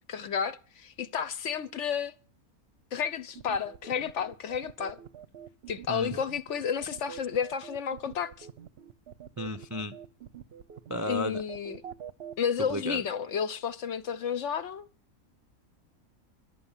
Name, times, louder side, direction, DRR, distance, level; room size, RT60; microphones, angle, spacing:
voice 1, 0.1-2.1 2.9-5.0 5.7-8.5 11.1-11.8 12.4-14.9, left 7 dB, 60° left, 1.0 m, -31 dB
sound 1, 3.3-12.3, right 9 dB, 55° right, 0.8 m, -45 dB
voice 2, 5.9-6.2 9.4-9.9 10.9-11.4 12.7-13.0, equal, 25° right, 0.3 m, -33 dB
11.5 x 7.7 x 7.2 m
omnidirectional pair, 1.5 m